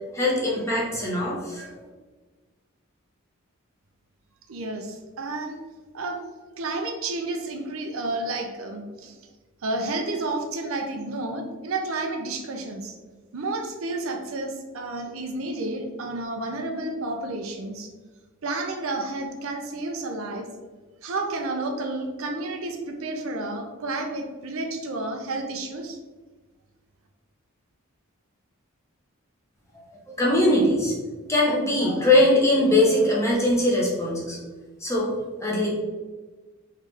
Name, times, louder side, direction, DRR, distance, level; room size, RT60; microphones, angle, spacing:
voice 1, 0.1-1.7 29.7-30.9 31.3-34.4 34.8-35.1 35.4-35.7, left 1 dB, 15° left, -5 dB, 0.9 m, -21 dB
voice 2, 4.5-5.6 5.9-6.2 6.6-9.2 9.6-12.9 13.3-17.9 18.4-20.5 21.0-26.0, right 2 dB, 70° right, 3 dB, 0.5 m, -31 dB
3.7 x 3.2 x 3.3 m, 1.3 s
head